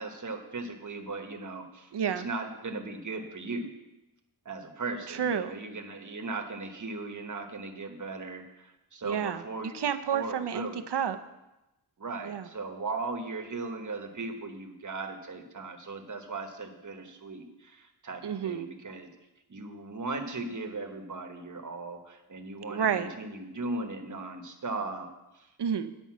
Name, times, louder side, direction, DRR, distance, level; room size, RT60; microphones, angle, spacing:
voice 1, 0.0-3.7 4.4-9.8 10.1-10.8 12.0-19.1 19.5-25.1 25.3-25.5, right 3 dB, 50° right, 4 dB, 1.2 m, -38 dB
voice 2, 1.9-2.3 5.1-5.5 9.0-9.4 9.7-11.2 12.2-12.5 18.2-18.7 22.7-23.1 25.6-25.9, right 8 dB, 85° right, 9 dB, 0.7 m, -30 dB
9.4 x 5.4 x 7.3 m, 0.97 s
wide cardioid pair, 100°, 40 cm